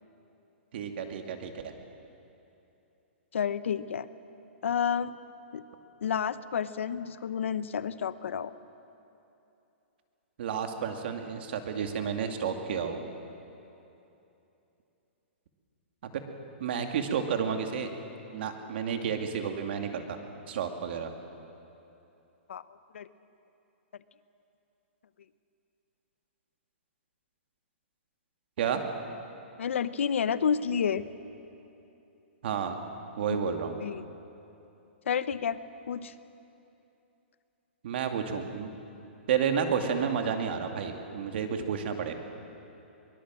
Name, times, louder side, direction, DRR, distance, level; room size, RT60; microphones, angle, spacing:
voice 1, 0.7-1.5 10.4-13.0 16.0-16.1 16.6-17.9 18.3-20.2 20.5-21.1 28.6-28.8 32.4-32.8 33.2-33.7 37.8-38.7 39.3-42.1, right 7 dB, 55° right, 5 dB, 2.5 m, -31 dB
voice 2, 3.3-4.1 4.6-5.2 5.5-5.6 6.0-8.5 22.5-22.6 22.9-23.1 29.6-31.1 33.8-34.1 35.1-35.6 35.9-36.1, left 7 dB, 80° left, 14 dB, 0.9 m, -30 dB
23.0 x 21.5 x 7.6 m, 2.9 s
hypercardioid pair, 155°, 7 cm